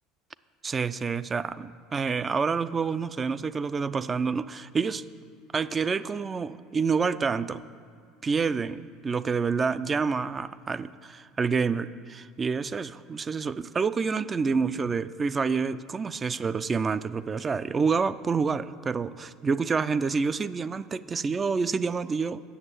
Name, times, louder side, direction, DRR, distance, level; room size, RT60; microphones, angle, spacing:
voice 1, 0.6-5.0 5.5-7.6 8.2-22.4, right 5 dB, 25° right, 15 dB, 0.3 m, -28 dB
8.0 x 6.7 x 8.2 m, 2.2 s
supercardioid pair, 95°, 0 cm